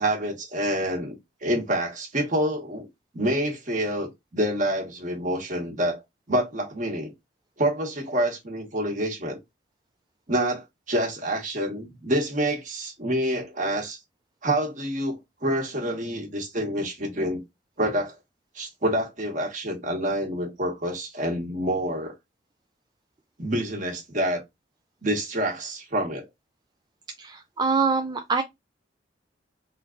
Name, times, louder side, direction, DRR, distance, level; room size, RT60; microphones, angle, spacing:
voice 1, 0.0-2.9 3.1-6.0 6.3-7.1 7.6-9.4 10.3-14.0 14.4-17.4 17.8-18.1 18.5-22.1 23.4-24.4 25.0-26.3, right 1 dB, 45° right, 1.3 m, -27 dB
voice 2, 27.2-28.4, right 4 dB, 25° right, 0.3 m, -24 dB
3.7 x 2.4 x 3.7 m
head